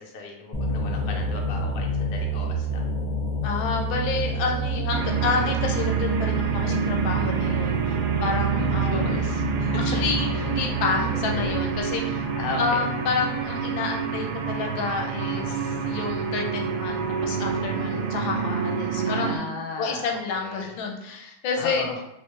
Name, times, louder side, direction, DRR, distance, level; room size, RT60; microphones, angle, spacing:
voice 1, 0.0-2.9 8.6-10.0 10.3-10.4 12.4-12.9 19.0-20.7 21.6-22.0, left 4 dB, 65° left, 0 dB, 0.8 m, -35 dB
sound 1, 0.5-11.8, right 3 dB, 30° left, 0.8 m, -28 dB
voice 2, 3.4-9.0 9.8-12.2 12.6-21.9, left 4 dB, 90° left, 2 dB, 1.4 m, -29 dB
sound 2, 4.9-19.4, right 5 dB, 70° right, 1.0 m, -27 dB
3.4 x 3.2 x 3.0 m, 0.84 s
omnidirectional pair, 2.1 m